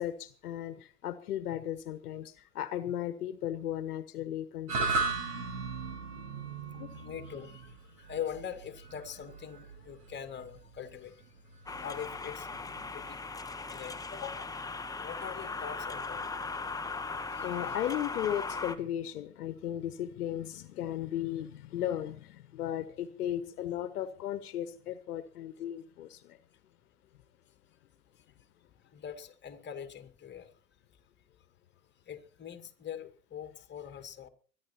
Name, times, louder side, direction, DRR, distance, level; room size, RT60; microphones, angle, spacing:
voice 1, 0.0-5.0 6.8-6.9 17.4-26.4, left 11 dB, 75° left, 1.3 m, -36 dB
sound 1, 4.7-13.1, right 4 dB, 70° right, 6.7 m, -37 dB
voice 2, 6.7-11.2 11.8-12.5 12.9-13.2 13.7-14.5 15.0-16.2 17.3-17.8 28.9-30.5 32.1-34.3, left 8 dB, 25° left, 2.4 m, -43 dB
sound 2, 11.7-18.8, left 4 dB, 10° left, 1.2 m, -38 dB
23.5 x 11.0 x 4.4 m
hypercardioid pair, 90°, 46 cm